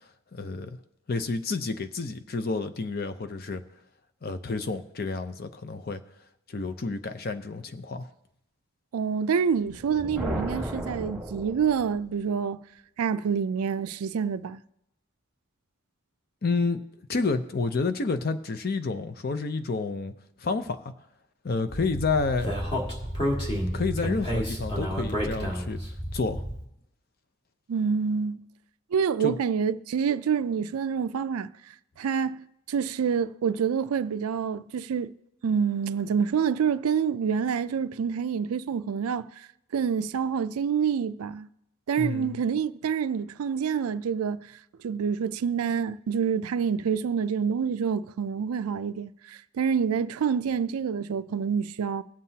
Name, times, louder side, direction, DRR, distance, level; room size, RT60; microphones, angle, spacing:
voice 1, 0.3-0.8 1.1-3.6 4.2-6.0 6.5-8.1 16.4-16.8 17.1-20.1 20.4-20.9 21.4-22.5 23.7-25.8 26.1-26.4 29.2-29.4 42.0-42.4, left 3 dB, 45° left, 0.6 m, -29 dB
voice 2, 8.9-12.6 13.0-14.6 27.7-28.4 28.9-31.5 32.0-35.1 35.4-39.5 39.7-41.5 41.9-44.4 44.8-52.0, right 6 dB, 80° right, 0.4 m, -27 dB
Thunder, 9.5-12.2, right 1 dB, ahead, 1.3 m, -34 dB
Speech, 21.7-26.6, equal, 25° left, 1.7 m, -30 dB
19.0 x 7.5 x 2.8 m
head